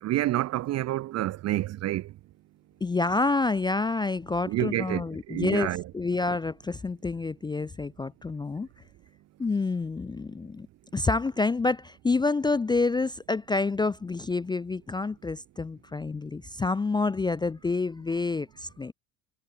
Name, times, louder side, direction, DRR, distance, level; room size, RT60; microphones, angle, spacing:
voice 1, 0.0-2.1 4.4-5.8, right 15 dB, 35° right, 0.7 m, -28 dB
voice 2, 2.8-8.7 9.4-10.7 10.9-18.9, left 3 dB, 10° left, 0.6 m, -28 dB
figure-of-eight pair, 65°, 47 cm